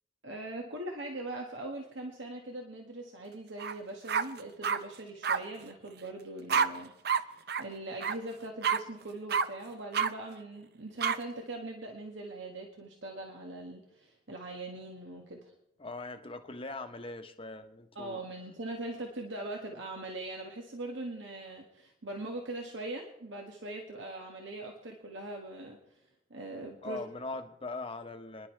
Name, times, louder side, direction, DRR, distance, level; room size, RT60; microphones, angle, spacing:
voice 1, 0.2-15.5 17.9-25.8 26.3-27.0, right 2 dB, 85° right, 1 dB, 1.7 m, -41 dB
sound 1, 3.6-3.8 4.1-4.8 5.2-5.4 6.5-6.7 7.1-7.2 7.5-7.6 8.0-8.2 8.6-8.8 9.3-9.5 9.9-10.1 11.0-11.2, right 6 dB, 60° right, 0.6 m, -27 dB
voice 2, 15.8-18.2 26.8-28.5, left 3 dB, 30° left, 6 dB, 1.0 m, -41 dB
29.0 x 11.0 x 3.3 m, 0.88 s
head